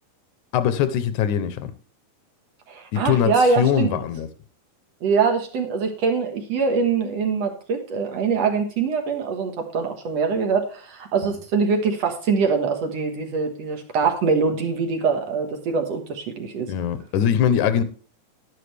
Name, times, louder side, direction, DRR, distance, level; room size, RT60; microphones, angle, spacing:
voice 1, 0.5-1.7 2.9-4.3 11.3-11.4 16.7-17.8, left 9 dB, 80° left, 2.2 m, -22 dB
voice 2, 2.7-3.9 5.0-16.7, right 5 dB, 60° right, 2.5 m, -23 dB
11.0 x 11.0 x 3.4 m
omnidirectional pair, 3.4 m